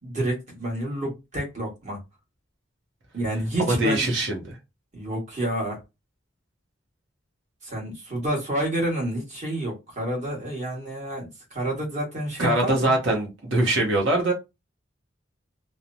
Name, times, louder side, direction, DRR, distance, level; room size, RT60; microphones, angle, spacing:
voice 1, 0.0-2.0 3.1-4.1 4.9-5.8 7.6-12.9, right 1 dB, 35° right, 1.5 m, -29 dB
voice 2, 3.6-4.6 12.4-14.3, right 1 dB, 70° right, 0.8 m, -23 dB
3.0 x 2.1 x 2.6 m
head